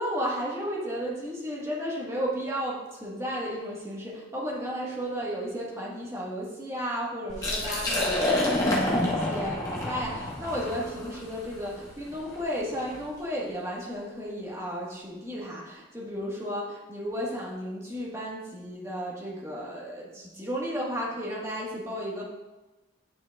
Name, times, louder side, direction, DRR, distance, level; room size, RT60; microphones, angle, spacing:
voice 1, 0.0-22.2, equal, 15° right, -5 dB, 1.4 m, -33 dB
Liquid, 7.3-13.1, left 1 dB, 20° left, 1.2 m, -28 dB
9.5 x 5.7 x 2.3 m, 1.1 s
head